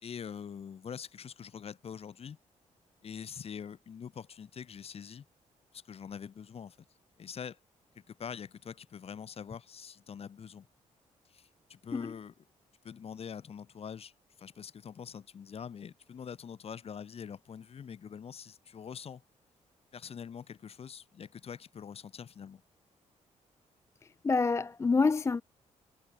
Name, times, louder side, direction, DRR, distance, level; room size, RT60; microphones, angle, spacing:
voice 1, 0.0-2.4 3.0-5.3 5.7-6.8 7.2-7.6 7.9-10.7 11.3-12.3 12.8-14.1 14.4-19.2 19.9-22.6, left 7 dB, 50° left, 2.3 m, -44 dB
voice 2, 24.2-25.4, left 4 dB, 20° left, 0.4 m, -27 dB
cardioid pair, 115°, 13 cm